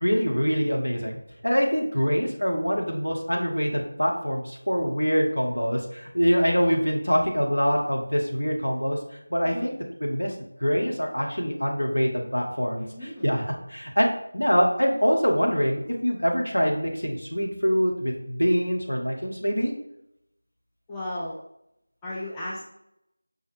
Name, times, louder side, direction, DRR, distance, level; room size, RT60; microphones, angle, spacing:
voice 1, 0.0-1.1 1.4-9.0 9.3-9.7 10.0-10.3 10.6-13.4 13.7-19.7, equal, 75° left, 0 dB, 0.9 m, -24 dB
voice 2, 9.4-9.8 12.8-13.3 20.9-21.4 22.0-22.6, left 1 dB, 5° left, -8 dB, 0.3 m, -35 dB
5.2 x 2.1 x 3.1 m, 0.80 s
figure-of-eight pair, 170°, 0 cm